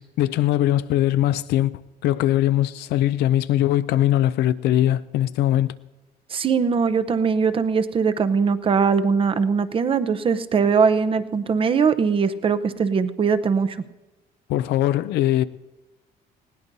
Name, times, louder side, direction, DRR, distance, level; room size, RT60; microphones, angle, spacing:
voice 1, 0.0-5.7 14.5-15.4, left 13 dB, 80° left, 0.5 m, -21 dB
voice 2, 6.3-13.8, right 5 dB, 30° right, 0.7 m, -21 dB
20.0 x 17.0 x 2.7 m
cardioid pair, 110°, 17 cm